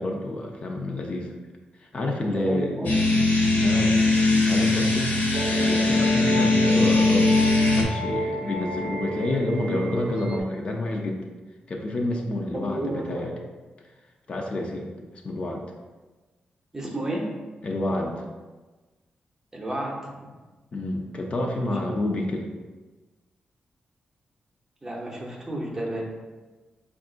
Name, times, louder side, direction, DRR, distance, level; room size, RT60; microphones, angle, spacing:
voice 1, 0.0-1.3 1.8-3.0 3.5-5.1 5.5-11.2 11.7-13.3 14.3-14.9 15.2-15.6 17.6-18.2 20.7-22.5, left 1 dB, 40° left, 1 dB, 0.5 m, -29 dB
voice 2, 2.3-3.0 12.5-13.3 16.7-17.3 19.5-20.3 24.8-26.0, right 1 dB, 20° right, -1 dB, 0.7 m, -31 dB
sound 1, 2.8-7.8, left 2 dB, 65° left, 0.9 m, -20 dB
sound 2, 5.3-10.4, right 1 dB, 60° right, 0.6 m, -31 dB
5.1 x 2.4 x 3.7 m, 1.3 s
wide cardioid pair, 150°, 3 cm